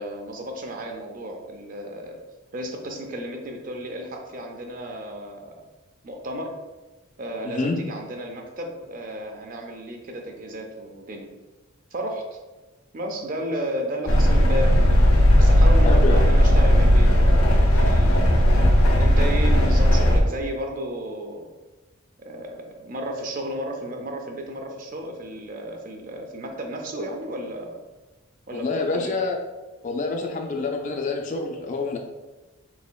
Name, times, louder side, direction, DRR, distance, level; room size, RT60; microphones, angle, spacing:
voice 1, 0.0-2.2 2.5-5.6 6.0-6.5 7.2-11.3 11.9-12.2 12.9-15.0 15.4-18.3 19.0-21.5 22.2-27.8 28.5-29.2, right 1 dB, 40° right, 3 dB, 0.4 m, -33 dB
voice 2, 7.4-7.8 15.8-16.2 28.5-29.4 29.8-32.0, left 3 dB, 35° left, 3 dB, 0.3 m, -27 dB
sound 1, 14.1-20.2, equal, 85° left, 0.6 m, -16 dB
4.2 x 2.9 x 2.2 m, 1.2 s
head